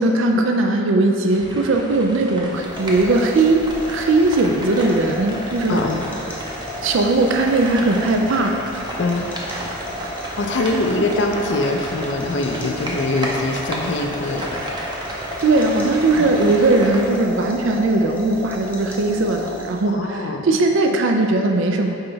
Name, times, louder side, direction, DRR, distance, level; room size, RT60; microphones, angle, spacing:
voice 1, 0.0-5.8 6.8-8.8 10.6-10.7 15.4-22.0, right 2 dB, 65° right, 3 dB, 0.4 m, -19 dB
sound 1, 1.3-17.0, right 1 dB, 20° right, 0.6 m, -33 dB
sound 2, 2.6-20.0, left 1 dB, 5° left, 0.9 m, -34 dB
voice 2, 5.7-6.1 9.0-9.3 10.1-14.6 16.1-16.4 19.9-20.4, left 2 dB, 60° left, 4 dB, 0.5 m, -23 dB
5.6 x 4.5 x 3.9 m, 2.6 s
head